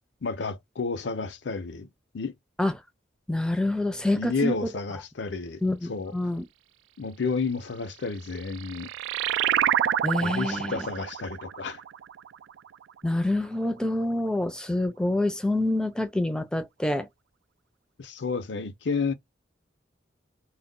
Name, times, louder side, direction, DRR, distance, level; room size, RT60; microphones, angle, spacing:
voice 1, 0.2-1.9 2.1-2.3 4.2-5.6 5.9-6.2 7.0-8.9 10.2-11.8 18.0-19.1, left 4 dB, 75° left, 0.6 m, -31 dB
voice 2, 3.3-4.7 5.6-6.4 10.0-10.9 13.0-17.1, left 1 dB, 5° left, 0.5 m, -27 dB
sound 1, 8.2-13.2, right 10 dB, 85° right, 0.3 m, -28 dB
2.2 x 2.1 x 3.7 m
head